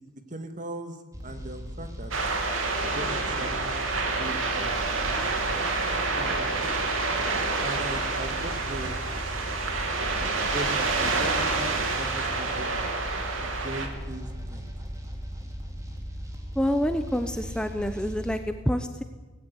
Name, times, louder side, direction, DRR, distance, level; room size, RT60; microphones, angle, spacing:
voice 1, 0.3-1.0 1.2-2.1 2.9-4.9 6.1-6.6 7.6-9.2 10.5-12.8 13.4-14.7, right 1 dB, 40° right, 7 dB, 2.1 m, -39 dB
sound 1, 1.1-18.4, equal, 15° right, 3.1 m, -38 dB
sound 2, 2.1-13.9, right 3 dB, 80° right, 3.3 m, -28 dB
voice 2, 16.5-19.0, equal, 5° left, 7 dB, 0.9 m, -27 dB
19.0 x 16.5 x 9.9 m, 1.2 s
head